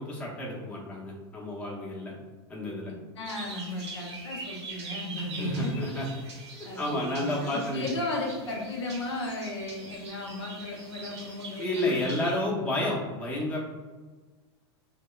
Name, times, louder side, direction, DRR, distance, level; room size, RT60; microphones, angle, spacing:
voice 1, 0.0-2.1 2.5-2.9 5.2-6.1 6.8-7.9 11.6-13.6, left 1 dB, 10° left, -5 dB, 0.6 m, -31 dB
voice 2, 2.9-5.8 6.6-12.4, left 2 dB, 90° left, -1 dB, 0.7 m, -35 dB
sound 1, 3.2-12.4, right 3 dB, 85° right, 0.7 m, -43 dB
2.8 x 2.0 x 2.2 m, 1.3 s
hypercardioid pair, 120°, 14 cm